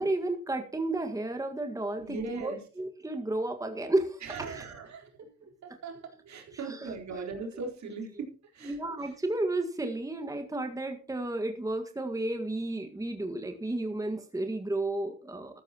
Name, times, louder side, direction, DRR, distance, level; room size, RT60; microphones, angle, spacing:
voice 1, 0.0-4.7 6.5-7.2 8.6-15.6, right 2 dB, 10° right, 5 dB, 1.7 m, -32 dB
voice 2, 2.0-2.6 4.2-5.1 5.6-6.0 6.2-8.3 8.5-8.7, right 4 dB, 65° right, 1 dB, 4.1 m, -39 dB
13.5 x 13.5 x 3.0 m, 0.38 s
cardioid pair, 90°, 30 cm